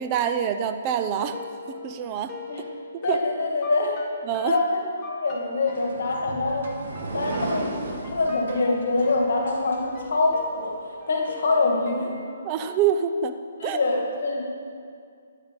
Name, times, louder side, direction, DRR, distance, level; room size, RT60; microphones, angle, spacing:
voice 1, 0.0-1.4 1.7-2.3 3.1-3.2 4.3-4.6 12.4-13.3 13.6-13.8, right 8 dB, 25° right, 8 dB, 0.8 m, -25 dB
sound 1, 1.0-12.6, left 3 dB, 20° left, 1.4 m, -43 dB
voice 2, 3.0-3.9 4.4-6.8 7.1-7.7 8.0-12.1 13.6-14.4, left 3 dB, 70° left, 1 dB, 2.2 m, -25 dB
sound 2, 5.7-10.4, right 2 dB, 65° right, 2.0 m, -35 dB
13.5 x 10.0 x 5.4 m, 2.3 s
hypercardioid pair, 155°, 0 cm